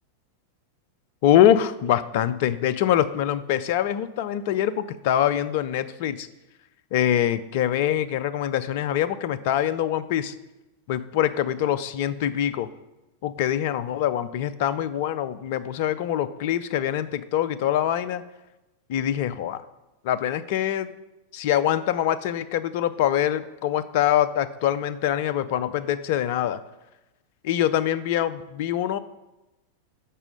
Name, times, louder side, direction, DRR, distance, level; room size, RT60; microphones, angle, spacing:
voice 1, 1.2-6.3 6.9-10.3 10.9-12.7 13.2-18.2 18.9-19.6 20.0-20.9 21.3-26.6 27.4-29.0, left 11 dB, 50° left, 14 dB, 0.4 m, -24 dB
6.0 x 5.5 x 6.4 m, 0.99 s
figure-of-eight pair, 90°, 0 cm